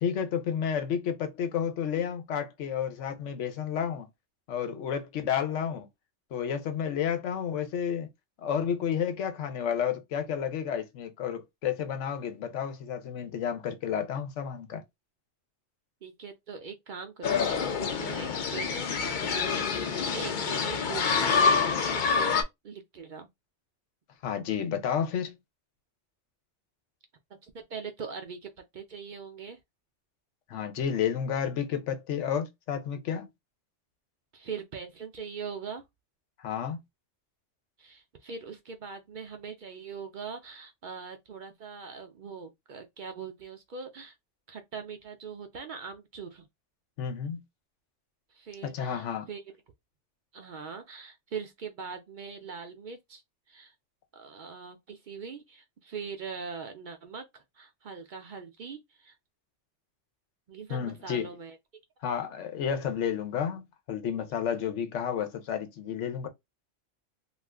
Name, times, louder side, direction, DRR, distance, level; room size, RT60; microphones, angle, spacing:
voice 1, 0.0-4.1 4.5-5.9 6.3-8.1 8.4-14.8 24.2-25.4 30.5-33.3 36.4-36.8 47.0-47.4 48.6-49.3 60.7-61.3 62.0-66.3, left 8 dB, 90° left, 1.0 m, -31 dB
voice 2, 16.0-23.3 27.4-29.6 34.3-35.8 37.8-44.2 44.5-46.5 48.3-49.4 50.3-53.2 53.5-53.7 54.1-59.2 60.5-61.6, right 5 dB, 55° right, 0.5 m, -42 dB
sound 1, 17.2-22.4, left 5 dB, 55° left, 0.6 m, -27 dB
2.4 x 2.4 x 3.3 m
omnidirectional pair, 1.2 m